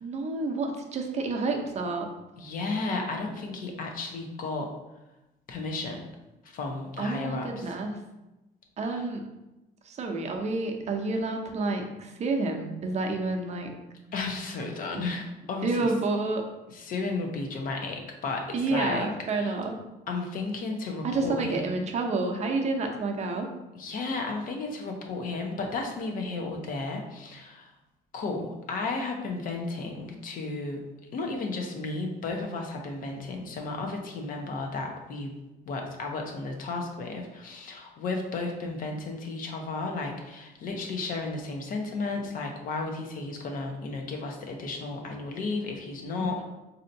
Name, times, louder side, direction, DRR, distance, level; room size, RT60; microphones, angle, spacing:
voice 1, 0.0-2.1 7.0-8.0 8.8-9.3 9.8-13.7 14.9-15.0 15.6-16.4 18.5-19.7 21.0-23.5 46.2-46.4, right 3 dB, 40° right, 3 dB, 0.6 m, -29 dB
voice 2, 2.4-4.7 5.5-6.1 6.4-7.8 14.1-15.9 16.7-19.1 19.3-19.5 20.1-21.8 23.7-27.7 28.1-30.8 31.1-35.3 35.7-46.4, left 3 dB, 55° left, 2 dB, 0.7 m, -33 dB
4.3 x 2.7 x 2.6 m, 1.0 s
cardioid pair, 110°, 17 cm